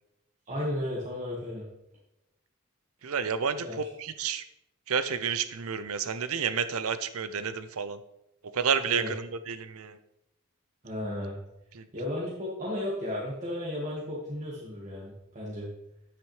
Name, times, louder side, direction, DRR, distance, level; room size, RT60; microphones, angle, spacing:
voice 1, 0.5-1.6 3.6-3.7 8.9-9.1 10.8-11.4 11.9-15.7, left 1 dB, 35° right, -6 dB, 1.7 m, -34 dB
voice 2, 3.0-4.4 4.9-8.0 8.5-10.0 11.7-11.9, right 6 dB, 80° right, 12 dB, 0.6 m, -30 dB
9.1 x 8.9 x 3.3 m, 0.86 s
head